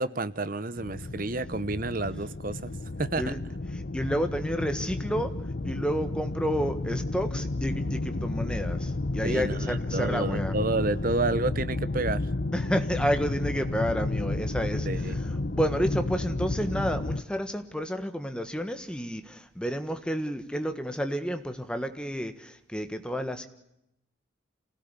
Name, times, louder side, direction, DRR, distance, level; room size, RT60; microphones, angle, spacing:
voice 1, 0.0-2.7 3.0-3.3 9.2-12.3 14.9-15.2, right 2 dB, 45° right, 0.9 m, -30 dB
sound 1, 0.8-17.2, left 2 dB, 50° left, 0.8 m, -32 dB
voice 2, 3.9-5.4 5.6-10.5 12.5-23.5, equal, 5° left, 1.5 m, -30 dB
27.0 x 17.0 x 8.3 m
head